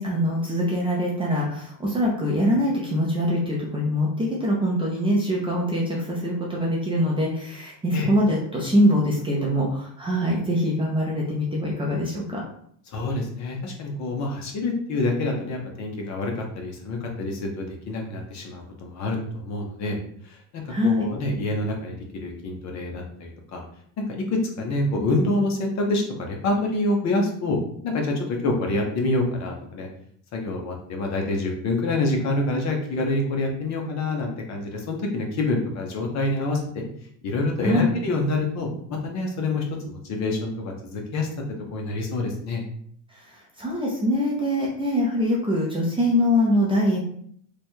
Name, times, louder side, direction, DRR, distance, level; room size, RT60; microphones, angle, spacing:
voice 1, 0.0-12.4 20.7-21.2 37.6-38.0 43.1-47.0, equal, 10° right, -4 dB, 0.5 m, -23 dB
voice 2, 12.9-20.0 20.2-23.6 24.0-24.1 24.3-27.6 27.8-29.9 30.3-36.8 37.2-41.3 41.7-42.6, left 2 dB, 40° left, 1 dB, 0.8 m, -27 dB
3.2 x 2.3 x 4.3 m, 0.63 s
cardioid pair, 150°, 44 cm